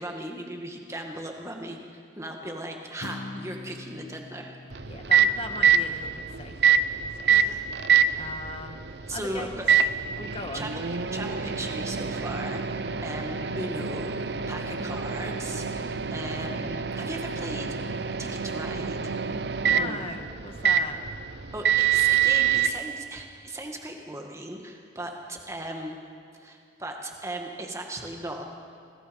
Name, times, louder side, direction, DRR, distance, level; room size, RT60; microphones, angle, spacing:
voice 1, 0.0-4.6 7.3-7.7 7.9-8.4 9.1-9.7 10.5-10.8 11.1-12.6 13.0-17.7 18.2-19.2 21.5-26.0 26.4-28.4, right 1 dB, 15° right, 2 dB, 2.0 m, -37 dB
Acoustic guitar, 3.0-7.2, left 2 dB, 55° left, 1.0 m, -44 dB
Microwave oven, 4.7-22.7, right 7 dB, 65° right, 0.8 m, -26 dB
voice 2, 4.9-6.1 6.4-7.4 8.2-9.6 10.2-10.7 19.6-21.0, left 3 dB, 30° left, 5 dB, 1.8 m, -39 dB
28.5 x 22.0 x 5.4 m, 2.3 s
head